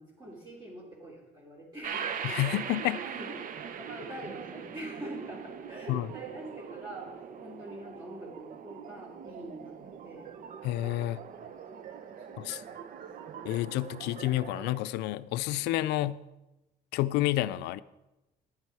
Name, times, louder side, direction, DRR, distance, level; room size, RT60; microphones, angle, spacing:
voice 1, 0.0-2.1 2.3-2.6 3.0-10.3 12.2-12.8, right 1 dB, 25° right, 3.3 m, -45 dB
sound 1, 1.8-14.8, right 7 dB, 55° right, 0.8 m, -41 dB
voice 2, 2.2-3.1 5.9-6.1 10.6-11.2 12.4-12.6 13.5-16.2 16.9-17.8, left 15 dB, 90° left, 0.5 m, -29 dB
11.0 x 9.7 x 4.7 m
cardioid pair, 110°, 17 cm